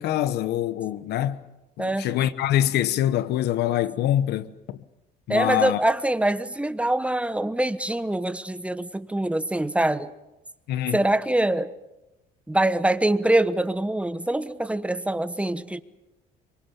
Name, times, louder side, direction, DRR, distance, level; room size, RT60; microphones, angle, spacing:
voice 1, 0.0-1.4 1.8-4.8 5.3-5.8 10.7-11.0, left 12 dB, 75° left, 1.2 m, -25 dB
voice 2, 1.8-2.1 5.3-10.1 10.9-11.7 12.5-15.8, right 1 dB, 5° right, 1.2 m, -24 dB
27.0 x 24.5 x 7.1 m
cardioid pair, 110°, 17 cm